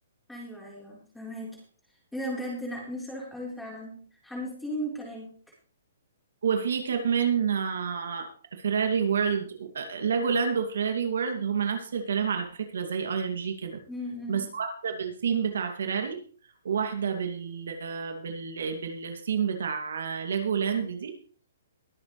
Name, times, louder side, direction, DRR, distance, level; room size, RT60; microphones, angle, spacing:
voice 1, 0.3-1.6 2.1-5.3 13.9-14.4, equal, ahead, -4 dB, 4.2 m, -36 dB
voice 2, 6.4-13.8 14.3-16.2 16.6-21.1, right 6 dB, 75° right, 5 dB, 2.5 m, -29 dB
22.0 x 7.9 x 3.3 m, 0.41 s
hypercardioid pair, 170°, 0 cm